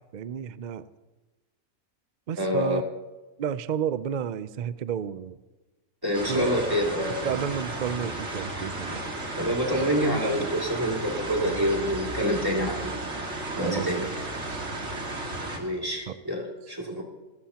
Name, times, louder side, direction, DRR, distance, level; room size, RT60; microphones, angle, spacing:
voice 1, 0.1-0.8 2.3-2.8 3.4-5.4 6.3-6.5 7.2-9.0 13.6-14.1 14.5-14.6 16.1-16.2, right 8 dB, 75° right, 14 dB, 0.4 m, -31 dB
voice 2, 2.3-2.8 6.0-7.3 9.4-12.9 13.6-14.1 15.6-17.0, equal, 15° right, -2 dB, 2.7 m, -27 dB
sound 1, 6.1-15.6, right 2 dB, 55° right, 2.4 m, -34 dB
28.0 x 13.0 x 2.9 m, 1.2 s
omnidirectional pair, 1.5 m